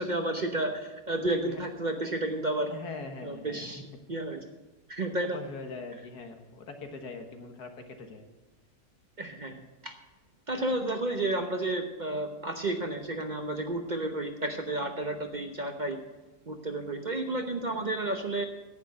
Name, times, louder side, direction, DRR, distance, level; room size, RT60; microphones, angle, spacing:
voice 1, 0.0-2.7 3.2-3.8 4.1-4.5 4.9-5.4 9.2-9.9 10.5-16.0 16.5-18.4, right 2 dB, 35° right, 5 dB, 0.8 m, -31 dB
voice 2, 2.7-3.8 5.2-7.7 8.0-8.3, left 4 dB, 85° left, 5 dB, 2.0 m, -42 dB
10.5 x 9.0 x 8.1 m, 1.1 s
omnidirectional pair, 1.6 m